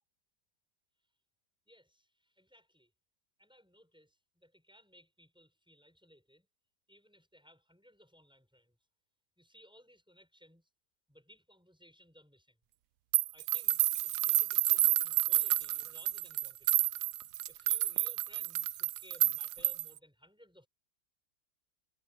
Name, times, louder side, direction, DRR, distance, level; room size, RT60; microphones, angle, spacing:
voice 1, 1.7-2.9 3.4-6.5 6.9-8.8 9.4-10.7 11.1-12.6 13.3-16.9 17.5-20.7, equal, 5° right, 6.0 m, -61 dB
sound 1, 13.1-20.0, right 15 dB, 75° right, 1.1 m, -30 dB
omnidirectional pair, 1.9 m